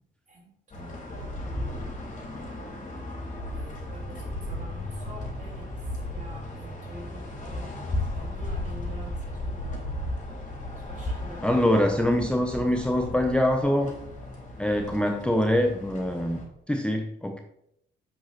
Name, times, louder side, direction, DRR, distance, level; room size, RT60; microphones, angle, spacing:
voice 1, 0.3-1.6 3.5-9.8 10.8-11.6, right 1 dB, 40° right, 3.3 m, -47 dB
sound 1, 0.7-16.4, left 1 dB, 35° left, 3.2 m, -35 dB
voice 2, 11.4-13.9 14.6-16.4 16.7-17.4, left 1 dB, 5° left, 0.7 m, -24 dB
7.7 x 6.0 x 4.2 m
cardioid pair, 90°, 20 cm